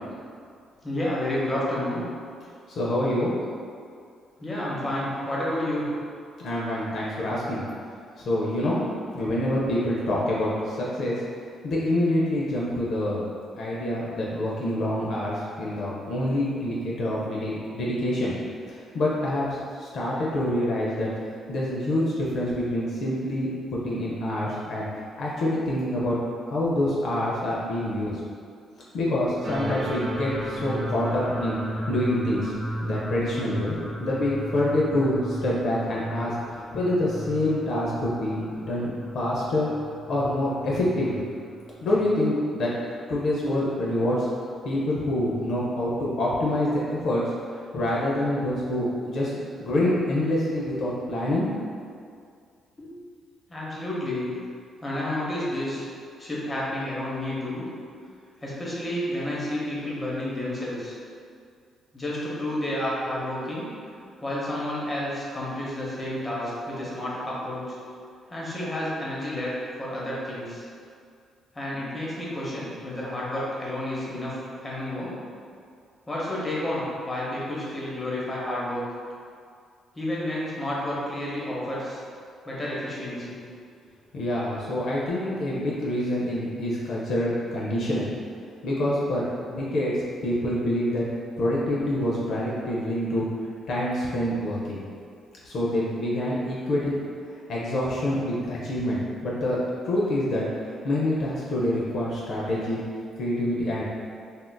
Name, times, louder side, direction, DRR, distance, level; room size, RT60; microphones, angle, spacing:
voice 1, 0.8-2.0 4.4-5.9 52.8-52.9 53.5-54.3 54.8-55.8 56.2-57.7 58.4-61.0 61.9-63.7 64.2-67.7 68.3-70.6 71.5-75.1 76.1-78.8 79.9-82.0 82.4-83.4, left 1 dB, 20° left, -6 dB, 0.8 m, -30 dB
voice 2, 2.7-3.3 6.4-7.6 8.3-8.8 9.1-11.2 11.6-13.2 13.5-18.3 18.7-19.5 19.8-21.1 21.5-24.9 25.2-26.2 26.5-28.2 28.9-31.6 31.9-32.5 32.8-36.3 36.7-39.7 40.1-41.2 41.8-42.7 43.1-44.3 44.6-47.2 47.7-49.3 49.6-51.5 84.1-88.1 88.6-89.9 90.2-91.0 91.4-93.2 93.7-94.8 95.4-97.0 97.5-100.5 100.8-102.8 103.2-103.8, left 1 dB, 65° left, -5 dB, 0.5 m, -26 dB
sound 1, 29.4-42.1, equal, 45° right, 0.5 m, -35 dB
3.5 x 2.4 x 2.2 m, 2.3 s
cardioid pair, 90°, 0 cm